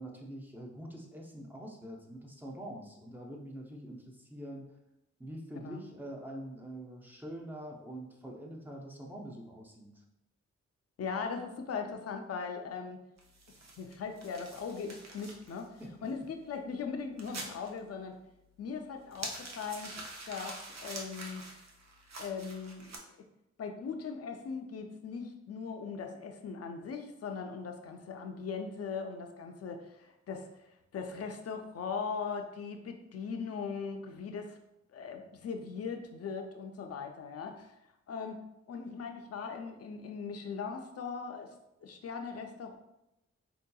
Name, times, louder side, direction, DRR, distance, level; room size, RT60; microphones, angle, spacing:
voice 1, 0.0-4.7 5.2-9.9 15.8-15.9, right 1 dB, 5° right, -1 dB, 0.5 m, -45 dB
voice 2, 11.0-13.0 13.8-18.2 18.6-19.9 20.3-21.5 22.2-23.2 23.6-30.5 30.9-34.6 34.9-37.7 38.1-41.5 41.8-42.8, left 5 dB, 55° left, 5 dB, 0.4 m, -39 dB
sound 1, 13.2-23.0, right 2 dB, 65° right, 0.6 m, -47 dB
4.4 x 2.7 x 2.3 m, 0.88 s
wide cardioid pair, 155°, 29 cm